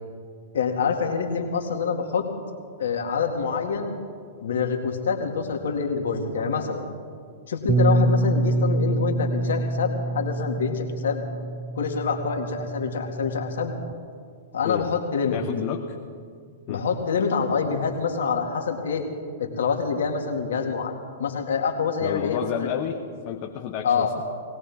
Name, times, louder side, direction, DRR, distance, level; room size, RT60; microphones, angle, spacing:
voice 1, 0.5-2.3 2.8-3.9 4.4-6.8 7.5-11.2 11.8-13.7 14.5-15.4 16.7-19.0 19.4-22.7 23.8-24.1, left 5 dB, 75° left, 2 dB, 2.3 m, -26 dB
Bass guitar, 7.7-13.9, right 2 dB, 20° right, 0.4 m, -26 dB
voice 2, 15.3-16.0 16.7-16.8 22.0-23.0 23.2-24.2, left 9 dB, 45° left, 2 dB, 1.1 m, -30 dB
20.5 x 17.5 x 3.6 m, 2.1 s
hypercardioid pair, 115°, 0 cm